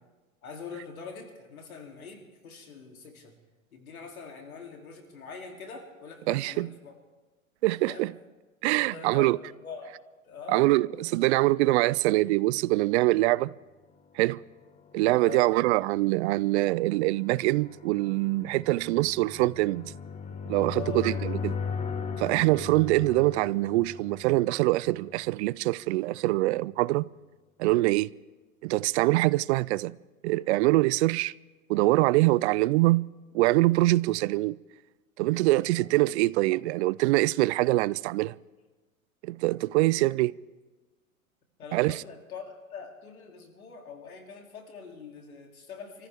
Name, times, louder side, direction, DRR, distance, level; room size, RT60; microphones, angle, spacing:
voice 1, 0.4-3.3 3.7-6.9 7.9-8.1 8.8-10.0 10.2-10.7 15.2-15.5 20.7-21.2 35.6-35.9 41.6-46.1, left 5 dB, 85° left, 3.1 m, -43 dB
voice 2, 6.3-6.7 7.6-8.1 8.6-9.4 10.5-13.5 14.1-14.4 14.9-19.9 20.5-21.5 22.2-27.1 27.6-28.1 28.6-30.0 30.2-31.3 31.7-33.1 33.3-34.6 35.2-38.4 39.2-40.4 41.7-42.0, right 19 dB, 55° right, 0.5 m, -24 dB
sound 1, 14.6-25.4, left 6 dB, 15° left, 1.2 m, -38 dB
26.0 x 14.5 x 3.6 m
hypercardioid pair, 110°, 42 cm